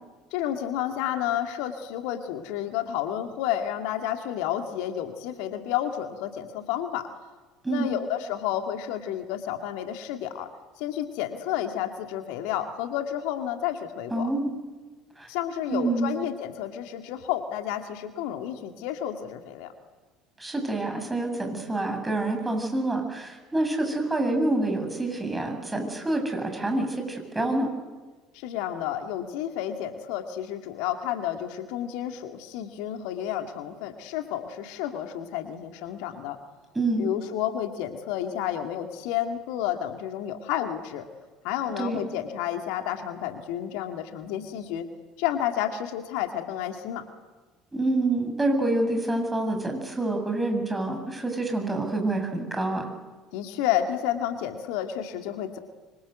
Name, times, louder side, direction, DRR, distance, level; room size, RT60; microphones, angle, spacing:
voice 1, 0.3-7.1 7.7-10.5 10.8-14.3 15.3-19.7 28.3-36.4 37.0-41.1 41.4-44.9 45.2-47.1 53.3-55.6, left 11 dB, 65° left, 6 dB, 2.1 m, -31 dB
voice 2, 14.1-14.5 15.2-15.3 15.7-16.1 20.4-27.7 36.7-37.1 41.8-42.0 47.7-52.9, right 2 dB, 15° right, 4 dB, 7.8 m, -27 dB
26.5 x 25.0 x 8.1 m, 1.3 s
figure-of-eight pair, 60°, 0 cm